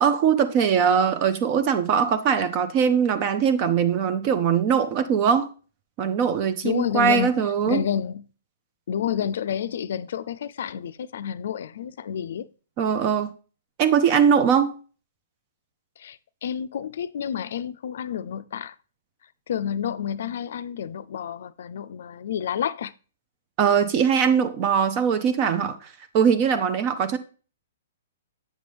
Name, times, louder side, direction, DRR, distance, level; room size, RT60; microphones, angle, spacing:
voice 1, 0.0-5.5 6.0-7.8 12.8-13.3 13.8-14.7 23.6-25.9 26.1-27.2, right 7 dB, 40° right, 0.6 m, -21 dB
voice 2, 6.6-8.2 8.9-12.5 16.0-18.7 19.5-22.9, left 9 dB, 70° left, 0.3 m, -29 dB
7.5 x 5.1 x 3.3 m
hypercardioid pair, 135°, 0 cm